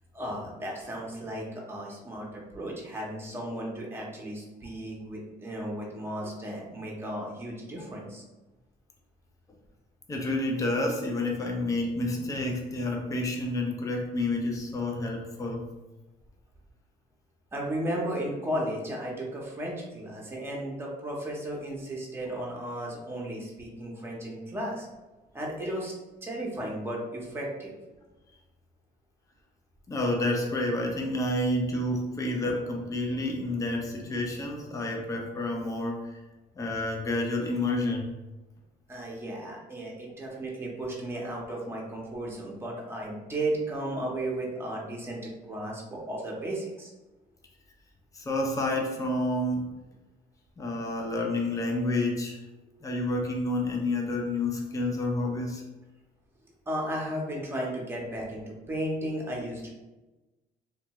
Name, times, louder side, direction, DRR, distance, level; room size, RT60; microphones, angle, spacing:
voice 1, 0.1-8.2 17.5-24.9 25.3-25.9 26.2-27.7 38.9-46.9 56.7-59.7, right 1 dB, 15° right, -3 dB, 0.8 m, -34 dB
voice 2, 10.1-15.7 29.9-36.1 36.6-38.1 48.1-49.8 50.6-52.4 52.8-55.6, left 2 dB, 20° left, 0 dB, 0.5 m, -29 dB
2.5 x 2.2 x 2.9 m, 1.1 s
cardioid pair, 110°, 17 cm